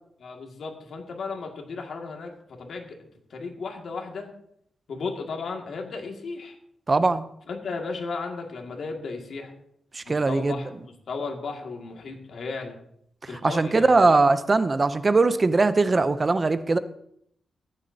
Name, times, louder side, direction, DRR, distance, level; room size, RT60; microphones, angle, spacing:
voice 1, 0.2-2.3 2.6-3.0 3.3-4.3 4.9-6.6 7.5-9.5 10.0-12.8 13.3-14.2, left 4 dB, 65° left, 2 dB, 2.1 m, -35 dB
voice 2, 6.9-7.2 9.9-10.6 13.4-16.8, right 3 dB, 30° right, 12 dB, 0.6 m, -20 dB
14.5 x 10.5 x 2.8 m, 0.71 s
wide cardioid pair, 120°, 0 cm